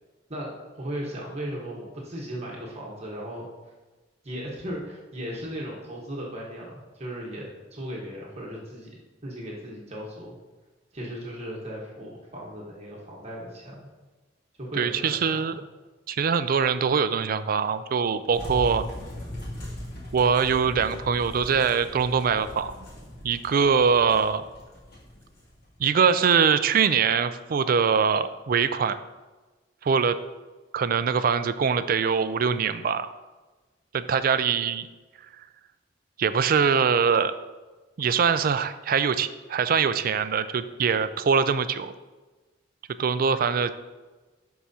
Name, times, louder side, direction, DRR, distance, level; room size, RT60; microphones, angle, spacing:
voice 1, 0.3-3.5 4.2-8.9 9.2-10.3 10.9-13.9 14.6-15.6, equal, 35° right, -3 dB, 1.2 m, -37 dB
voice 2, 14.8-15.5 16.1-18.9 20.1-22.8 23.2-24.5 25.8-29.0 29.8-30.2 30.7-33.1 33.9-34.9 36.2-37.3 38.0-41.9 43.0-43.7, right 6 dB, 50° right, 13 dB, 0.4 m, -23 dB
sound 1, 18.3-25.9, left 1 dB, 55° left, 2.5 m, -39 dB
11.5 x 4.8 x 2.8 m, 1.2 s
head